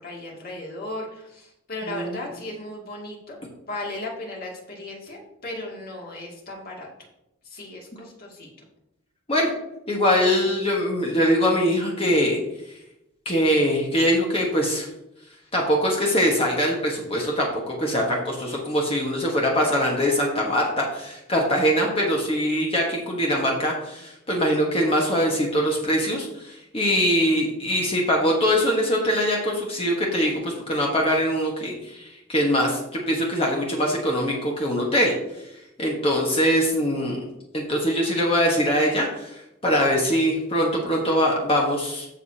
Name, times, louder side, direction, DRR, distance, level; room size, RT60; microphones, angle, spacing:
voice 1, 0.0-3.4 3.7-6.9 7.4-8.5, left 2 dB, 50° left, -2 dB, 2.5 m, -36 dB
voice 2, 1.9-2.2 9.3-9.5 9.9-12.4 13.2-14.9 15.5-35.1 35.8-37.2 37.5-42.1, equal, 30° left, -1 dB, 1.4 m, -22 dB
15.0 x 5.0 x 2.9 m, 0.86 s
head